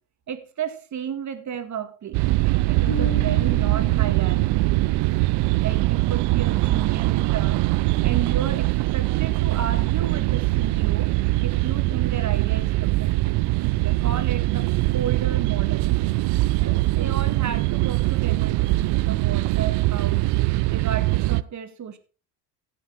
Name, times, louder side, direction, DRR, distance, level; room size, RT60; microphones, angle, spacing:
voice 1, 0.3-2.2 2.7-5.1 5.6-7.7 8.0-11.1 11.4-13.1 13.8-15.9 16.6-20.2 20.7-22.0, right 8 dB, 35° right, 10 dB, 2.1 m, -33 dB
sound 1, 2.1-21.4, right 20 dB, 60° right, 0.6 m, -22 dB
Bass guitar, 2.9-5.9, left 4 dB, 35° left, 3.3 m, -37 dB
16.0 x 6.7 x 4.5 m, 0.35 s
supercardioid pair, 85°, 46 cm